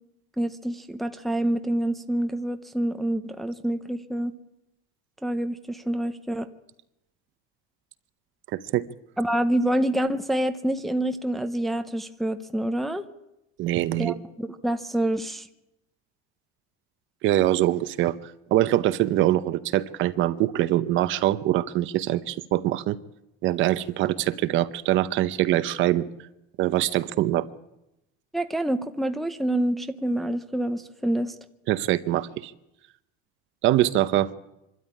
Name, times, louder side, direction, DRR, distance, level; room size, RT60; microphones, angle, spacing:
voice 1, 0.4-4.3 5.2-6.5 9.2-13.0 14.0-15.5 28.3-31.3, right 1 dB, ahead, 7 dB, 0.7 m, -27 dB
voice 2, 8.5-8.8 13.6-14.1 17.2-23.0 23.4-26.1 26.6-27.5 31.7-32.5 33.6-34.3, right 14 dB, 45° right, 14 dB, 0.8 m, -23 dB
25.0 x 13.0 x 9.9 m, 0.90 s
cardioid pair, 165°, 29 cm